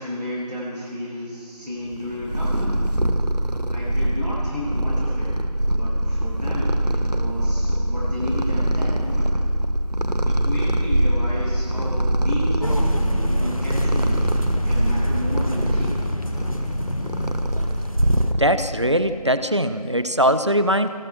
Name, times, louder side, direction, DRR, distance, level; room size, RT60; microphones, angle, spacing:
voice 1, 0.0-2.7 3.4-5.3 5.6-9.3 10.2-14.2 14.6-16.0, left 1 dB, ahead, -35 dB, 5.7 m, -32 dB
Purr, 1.9-18.7, right 1 dB, 80° right, 1.9 m, -23 dB
sound 1, 12.6-18.3, left 1 dB, 55° left, 1.9 m, -29 dB
voice 2, 18.4-20.9, equal, 45° right, 11 dB, 1.1 m, -20 dB
27.0 x 23.5 x 6.2 m, 2.4 s
figure-of-eight pair, 180°, 21 cm